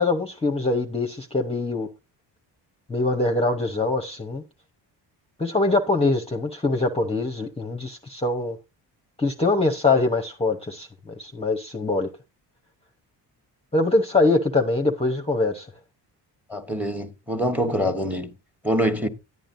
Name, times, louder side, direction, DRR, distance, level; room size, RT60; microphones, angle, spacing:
voice 1, 0.0-1.9 2.9-4.4 5.4-8.6 9.2-12.1 13.7-15.7, left 2 dB, 15° left, 0.8 m, -23 dB
voice 2, 16.5-18.3 18.6-19.1, equal, 5° right, 1.2 m, -25 dB
11.0 x 8.9 x 2.6 m
cardioid pair, 85°, 43 cm